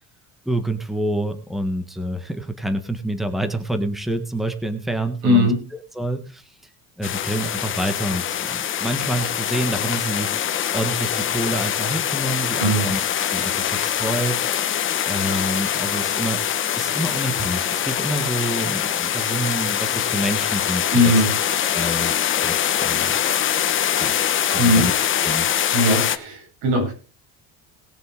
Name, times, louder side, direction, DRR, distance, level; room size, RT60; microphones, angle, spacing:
voice 1, 0.4-5.5 5.9-6.6 7.0-10.4 10.7-14.4 15.1-16.4 16.8-20.8 21.7-23.1 24.0-24.1 24.5-24.9 25.2-25.5, right 1 dB, ahead, 8 dB, 1.5 m, -27 dB
voice 2, 5.2-5.6 12.6-12.8 20.9-21.4 24.6-24.9 25.7-26.9, left 1 dB, 85° right, 0 dB, 7.9 m, -19 dB
sound 1, 7.0-26.2, left 9 dB, 35° left, 1.3 m, -23 dB
20.0 x 6.8 x 3.8 m, 0.33 s
cardioid pair, 150°, 36 cm